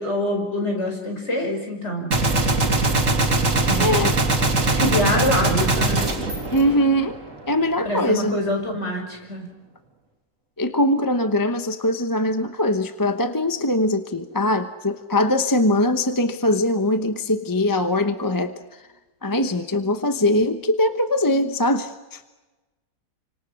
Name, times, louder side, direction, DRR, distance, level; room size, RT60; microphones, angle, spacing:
voice 1, 0.0-2.1 3.7-4.0 4.7-6.1 7.8-9.5, left 1 dB, 40° left, 2 dB, 5.7 m, -25 dB
Gunshot gunfire, 2.1-7.3, right 2 dB, 45° right, 3.0 m, -21 dB
voice 2, 3.8-4.1 6.5-7.2 7.5-8.4 10.6-18.8 19.2-22.2, left 1 dB, 15° left, 8 dB, 0.8 m, -22 dB
29.0 x 25.5 x 6.4 m, 1.1 s
omnidirectional pair, 1.8 m